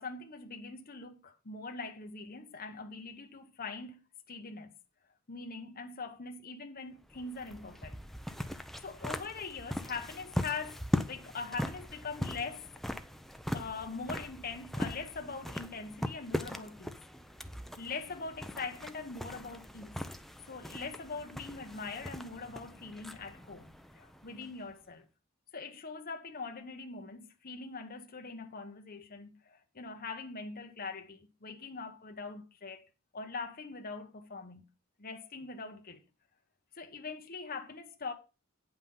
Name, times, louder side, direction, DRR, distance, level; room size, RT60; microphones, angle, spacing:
voice 1, 0.0-4.0 4.3-4.7 5.3-8.0 8.8-12.7 13.5-17.0 17.8-20.0 20.5-23.7 23.9-25.0 25.5-32.9 33.1-34.7 35.0-36.0 36.7-38.1, left 4 dB, 45° left, 1.1 m, -42 dB
sound 1, 7.0-24.7, equal, ahead, 0.6 m, -40 dB
9.2 x 5.8 x 5.5 m
head